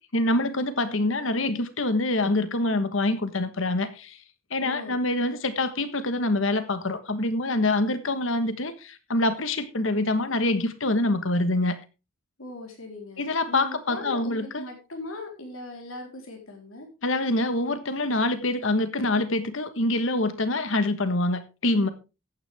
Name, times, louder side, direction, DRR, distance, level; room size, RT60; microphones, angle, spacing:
voice 1, 0.1-4.2 4.5-11.8 13.2-14.6 17.0-21.9, left 2 dB, 70° left, 1.4 m, -25 dB
voice 2, 4.6-5.0 12.4-16.9, left 2 dB, 85° left, 4.0 m, -39 dB
14.0 x 9.4 x 3.5 m
head